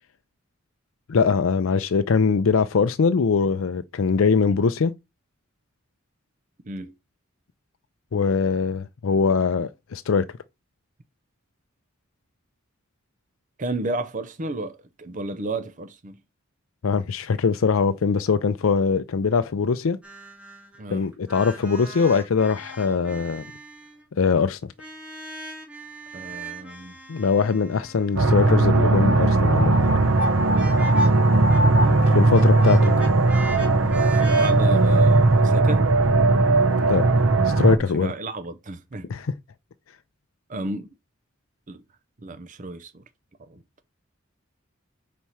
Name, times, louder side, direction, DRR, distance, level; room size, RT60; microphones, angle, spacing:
voice 1, 1.1-4.9 8.1-10.2 16.8-20.0 20.9-23.4 24.2-24.6 27.1-29.8 32.1-33.0 36.8-37.0 37.5-38.1 39.1-39.3, left 5 dB, 80° left, 0.5 m, -22 dB
voice 2, 13.6-16.2 20.8-21.1 26.1-26.9 31.8-32.5 34.1-35.9 37.7-39.1 40.5-40.9 41.7-41.8 42.2-43.0 43.5-43.6, right 2 dB, 40° right, 0.7 m, -33 dB
sound 1, 20.0-20.9 21.1-24.1 24.8-29.0 29.8-29.9 30.2-30.3 30.5-31.1 31.5-31.6 32.0-34.5, right 3 dB, 5° right, 1.7 m, -40 dB
sound 2, 28.2-37.8, right 2 dB, 70° right, 0.9 m, -18 dB
4.7 x 4.2 x 5.6 m
head